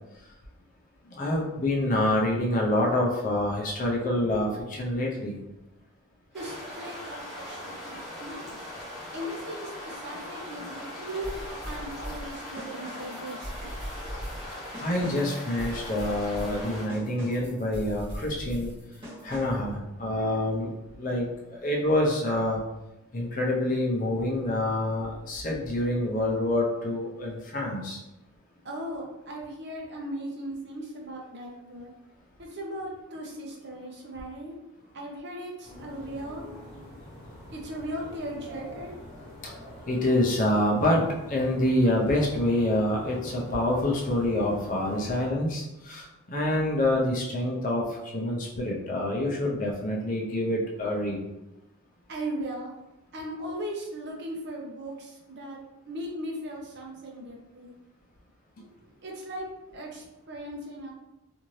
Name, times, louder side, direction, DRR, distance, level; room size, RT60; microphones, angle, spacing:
voice 1, 1.1-5.4 14.8-18.7 19.2-22.6 23.1-28.0 39.4-39.5 39.9-51.2, left 1 dB, 35° left, -2 dB, 0.5 m, -27 dB
sound 1, 6.3-16.9, left 1 dB, ahead, 0.9 m, -40 dB
voice 2, 6.3-8.7 9.1-14.0 28.6-31.9 32.4-34.6 34.9-36.4 37.5-39.0 52.1-52.8 53.1-55.6 55.8-57.7 58.8-59.5 59.7-60.9, right 1 dB, 50° right, -1 dB, 0.6 m, -38 dB
sound 2, 11.2-19.7, equal, 25° right, 1.0 m, -40 dB
sound 3, 35.6-45.3, equal, 20° left, 1.1 m, -45 dB
2.6 x 2.6 x 3.1 m, 0.95 s
head